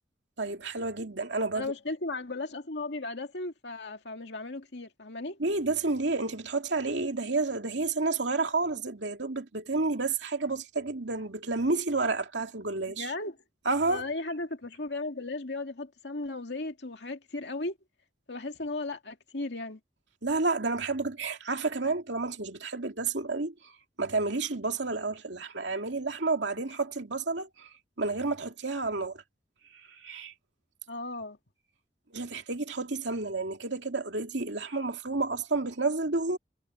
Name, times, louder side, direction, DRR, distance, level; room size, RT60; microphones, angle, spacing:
voice 1, 0.4-1.7 5.4-13.1 13.7-14.1 20.2-23.7 24.0-27.7 28.0-29.2 29.9-30.3 32.1-36.4, right 3 dB, 90° right, 2.5 m, -30 dB
voice 2, 1.5-5.4 13.0-13.4 13.9-17.8 18.3-19.8 30.9-31.4, left 2 dB, 75° left, 2.2 m, -36 dB
head